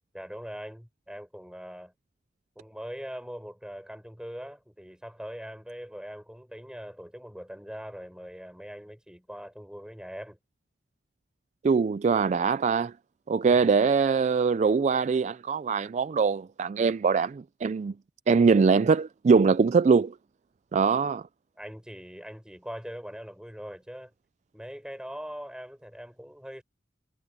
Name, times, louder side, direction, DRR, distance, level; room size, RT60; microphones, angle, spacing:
voice 1, 0.1-1.9 2.6-10.4 13.5-13.7 21.6-24.1 24.5-26.6, equal, 5° right, 5.2 m, -41 dB
voice 2, 11.6-12.9 13.3-17.9 18.3-20.1 20.7-21.2, right 5 dB, 40° right, 0.3 m, -23 dB
head